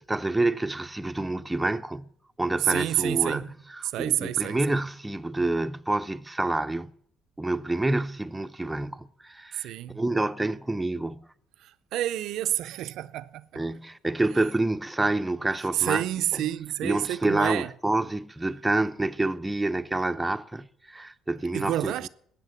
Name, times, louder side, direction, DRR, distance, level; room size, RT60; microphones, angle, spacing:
voice 1, 0.0-2.1 2.4-6.9 7.4-11.2 13.6-16.0 16.3-16.4 16.8-22.1, right 2 dB, 10° right, 0.6 m, -28 dB
voice 2, 2.6-3.5 3.9-4.8 9.5-10.0 11.6-13.6 15.6-17.7 21.5-22.1, right 13 dB, 75° right, 0.5 m, -29 dB
14.0 x 8.9 x 7.1 m
cardioid pair, 90°, 0 cm